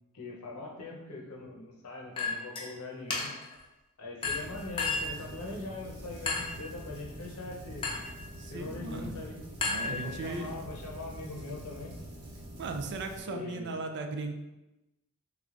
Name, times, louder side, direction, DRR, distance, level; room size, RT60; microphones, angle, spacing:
voice 1, 0.1-3.3 4.0-7.9 8.5-9.4 9.9-12.0 13.2-13.8, left 2 dB, 70° left, -1 dB, 0.7 m, -42 dB
Chink clink, 2.2-2.7 3.1-3.5 4.2-5.2 6.3-6.6 7.8-8.2 9.6-10.4, left 4 dB, 25° left, 0.6 m, -33 dB
sound 1, 4.2-13.2, equal, 75° right, 1.0 m, -45 dB
voice 2, 8.4-9.2 9.7-10.5 12.6-14.3, right 3 dB, 50° right, 5 dB, 0.4 m, -37 dB
3.5 x 3.1 x 2.5 m, 1.0 s
head